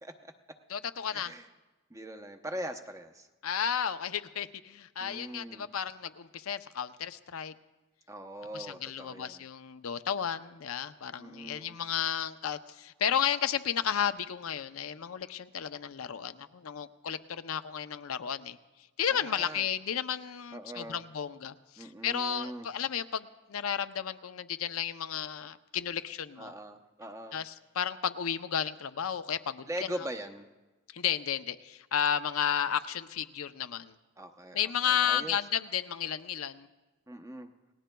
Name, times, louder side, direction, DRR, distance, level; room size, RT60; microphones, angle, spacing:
voice 1, 0.0-0.3 1.1-1.5 1.9-3.3 5.0-5.7 8.1-9.4 11.2-11.8 19.1-19.7 20.5-21.0 21.8-22.7 26.4-27.4 29.7-30.5 34.2-35.4 37.1-37.5, right 1 dB, 15° right, 6 dB, 0.7 m, -41 dB
voice 2, 0.7-1.3 3.4-7.5 8.5-18.6 19.0-26.5 27.3-29.9 30.9-33.9 34.5-36.7, left 8 dB, 85° left, 10 dB, 0.6 m, -33 dB
28.5 x 18.5 x 2.3 m, 1.2 s
head